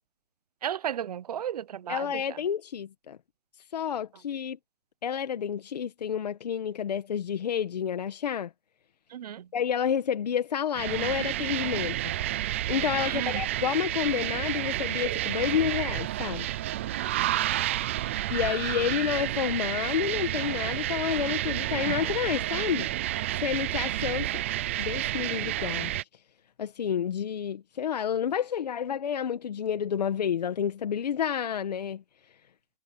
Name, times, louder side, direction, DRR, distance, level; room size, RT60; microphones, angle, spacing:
voice 1, 0.6-2.4 9.1-9.5 13.0-13.4 17.0-17.7, right 10 dB, 70° right, 0.8 m, -35 dB
voice 2, 1.9-3.2 3.7-4.6 5.0-8.5 9.5-12.0 12.7-16.5 18.3-22.9 23.4-24.4 24.8-25.9 26.6-32.0, left 8 dB, 80° left, 1.7 m, -29 dB
sound 1, 10.8-26.0, right 14 dB, 20° right, 0.5 m, -30 dB
hypercardioid pair, 180°, 20 cm